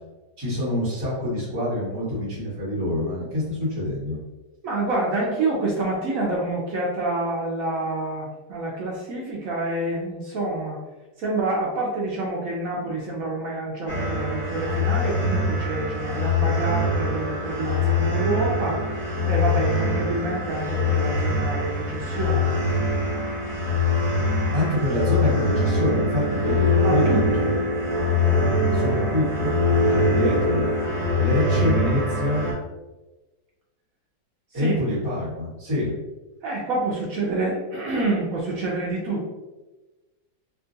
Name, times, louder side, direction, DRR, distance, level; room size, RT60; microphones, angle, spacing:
voice 1, 0.4-4.2 24.5-27.6 28.7-30.6 31.2-32.4 34.5-35.9, left 1 dB, 15° right, -8 dB, 1.1 m, -26 dB
voice 2, 4.6-10.8 11.2-18.8 19.1-22.5 26.7-27.5 34.5-34.8 36.4-39.3, right 2 dB, 65° right, -3 dB, 0.9 m, -27 dB
sound 1, 13.9-32.5, left 2 dB, 15° left, 0.7 m, -23 dB
3.6 x 2.3 x 2.6 m, 1.1 s
omnidirectional pair, 1.8 m